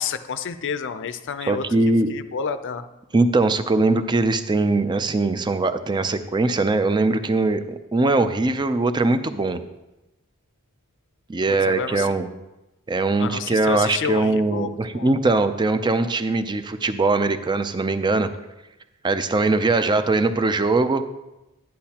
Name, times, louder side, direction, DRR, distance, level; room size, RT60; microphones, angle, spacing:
voice 1, 0.0-1.6 2.1-2.9 11.5-12.1 13.2-15.1, left 6 dB, 55° left, 11 dB, 0.5 m, -29 dB
voice 2, 1.5-2.1 3.1-9.6 11.3-12.3 12.9-18.3 19.0-21.0, right 3 dB, 20° right, 10 dB, 0.4 m, -21 dB
10.5 x 10.0 x 2.9 m, 1.0 s
head